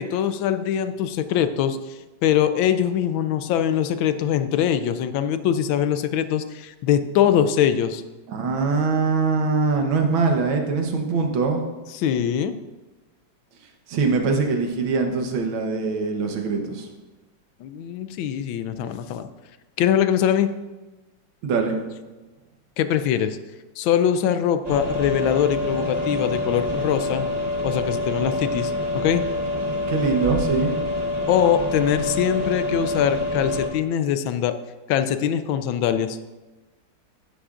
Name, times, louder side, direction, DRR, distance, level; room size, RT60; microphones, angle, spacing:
voice 1, 0.0-8.0 11.9-12.5 17.6-19.3 19.8-20.5 22.8-23.4 23.8-27.3 27.6-29.2 31.3-34.5 34.9-36.2, left 9 dB, 85° left, 10 dB, 1.4 m, -22 dB
voice 2, 8.3-11.6 13.9-16.9 21.4-21.8 29.9-30.7, right 4 dB, 85° right, 3 dB, 1.9 m, -22 dB
sound 1, 24.6-33.7, left 2 dB, 30° right, 0.9 m, -26 dB
11.0 x 8.8 x 2.5 m, 1.2 s
omnidirectional pair, 2.1 m